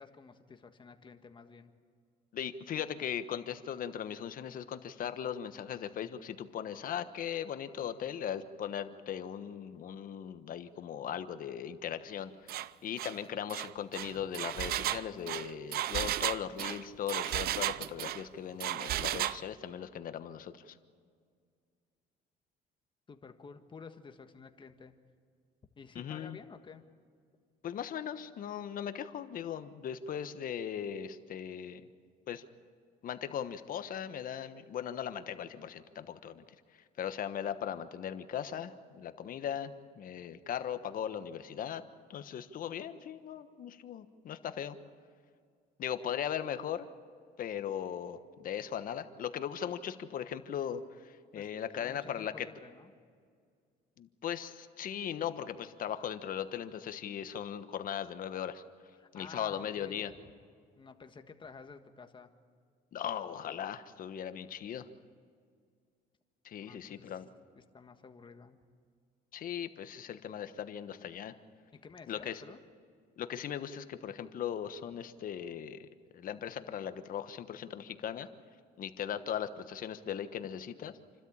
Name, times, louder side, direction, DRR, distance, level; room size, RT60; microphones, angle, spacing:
voice 1, 0.0-1.7 23.1-24.9 25.8-26.8 51.3-51.5 51.7-52.9 59.0-60.1 60.7-62.3 66.6-67.2 67.5-68.6 71.7-72.6, left 5 dB, 30° left, 7 dB, 1.6 m, -51 dB
voice 2, 2.3-20.8 25.9-26.4 27.6-31.8 32.3-32.4 33.0-36.4 37.0-41.8 42.1-44.8 45.8-46.8 47.4-52.5 54.0-58.6 59.1-60.1 62.9-64.9 66.4-67.3 69.3-71.3 72.1-72.4 73.2-75.9 76.1-78.3 78.8-80.9, left 9 dB, 55° left, 10 dB, 1.2 m, -38 dB
Engine, 12.5-12.7 13.0-13.2 13.5-18.2 18.6-19.4, right 13 dB, 65° right, 0.6 m, -34 dB
28.5 x 13.0 x 8.7 m, 2.1 s
cardioid pair, 110°, 17 cm